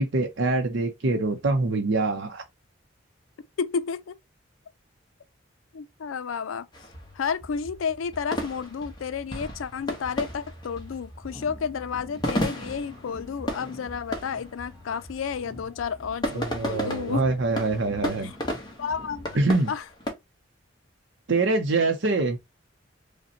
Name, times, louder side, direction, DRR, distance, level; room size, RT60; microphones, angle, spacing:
voice 1, 0.0-2.4 16.3-18.3 19.3-19.7 21.3-22.4, right 3 dB, 65° right, 0.6 m, -24 dB
voice 2, 3.6-4.2 5.7-6.7 7.1-17.2 18.2-18.3 18.8-19.4 19.7-19.8, left 6 dB, 90° left, 0.4 m, -31 dB
sound 1, 6.7-20.1, equal, 20° left, 1.0 m, -35 dB
sound 2, 11.2-15.1 15.4-19.3, left 2 dB, ahead, 1.1 m, -48 dB
4.9 x 2.2 x 2.8 m
head